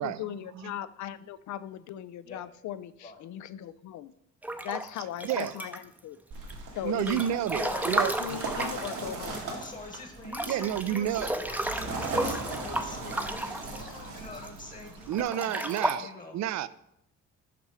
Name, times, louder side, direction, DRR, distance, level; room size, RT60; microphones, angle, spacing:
voice 1, 0.0-4.1 4.6-6.2 6.7-7.3 7.5-9.4, left 11 dB, 70° left, 15 dB, 0.5 m, -38 dB
Breathing / Bathtub (filling or washing) / Splash splatter, 4.4-6.0 6.5-9.7 9.9-10.0 10.3-14.5 15.1-15.9, right 1 dB, 5° right, 0.6 m, -33 dB
voice 2, 5.2-5.6 6.8-8.4 10.5-11.3 15.1-16.7, right 11 dB, 65° right, 17 dB, 0.5 m, -30 dB
sound 1, 6.3-15.2, right 3 dB, 85° right, 1.7 m, -38 dB
voice 3, 9.5-16.4, left 3 dB, 25° left, 4 dB, 1.3 m, -45 dB
5.9 x 5.5 x 4.8 m, 0.78 s
cardioid pair, 90°, 30 cm